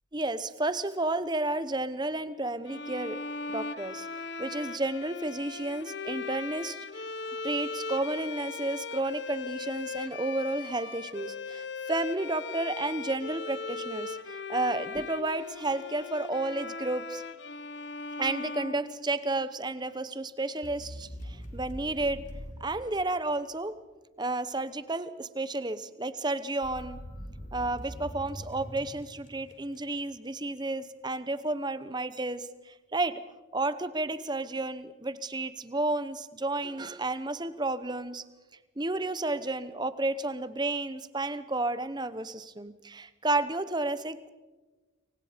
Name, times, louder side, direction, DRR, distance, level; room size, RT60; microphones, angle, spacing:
voice 1, 0.1-3.2 3.5-4.1 4.4-7.1 7.4-17.2 18.2-22.2 22.6-23.8 24.2-27.0 27.5-33.2 33.5-38.2 38.8-44.3, right 2 dB, 20° right, 14 dB, 0.9 m, -32 dB
sound 1, 2.6-19.5, left 4 dB, 60° left, 0.9 m, -39 dB
sound 2, 20.6-23.6 26.6-30.1, equal, 40° left, 2.9 m, -43 dB
29.0 x 24.5 x 5.1 m, 1.2 s
head